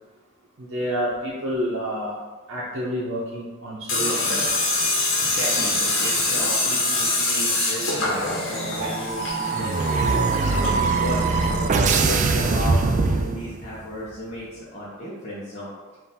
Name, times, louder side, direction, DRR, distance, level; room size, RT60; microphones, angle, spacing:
voice 1, 0.6-2.2 2.5-4.5, equal, 70° right, -6 dB, 0.7 m, -29 dB
Tools, 3.9-11.7, left 2 dB, 65° left, 1.1 m, -25 dB
voice 2, 5.2-11.2 11.9-15.7, equal, 35° left, -9 dB, 0.8 m, -34 dB
sound 1, 8.8-13.8, right 4 dB, 35° right, 0.3 m, -22 dB
3.8 x 2.5 x 4.1 m, 1.3 s
head